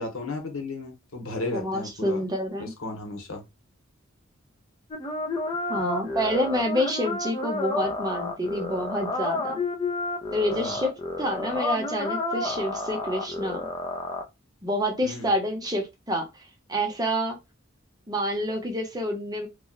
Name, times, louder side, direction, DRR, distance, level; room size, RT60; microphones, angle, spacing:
voice 1, 0.0-2.2 2.6-3.4 5.7-5.8 10.5-10.8 15.0-15.3, left 2 dB, 80° left, 1.2 m, -34 dB
voice 2, 1.5-2.7 5.7-9.6 10.3-10.9 11.2-13.6 14.6-16.2 16.7-17.4 18.1-19.5, equal, 20° right, 0.9 m, -28 dB
sound 1, 4.9-14.2, left 2 dB, 25° left, 0.6 m, -30 dB
3.0 x 2.3 x 4.0 m
head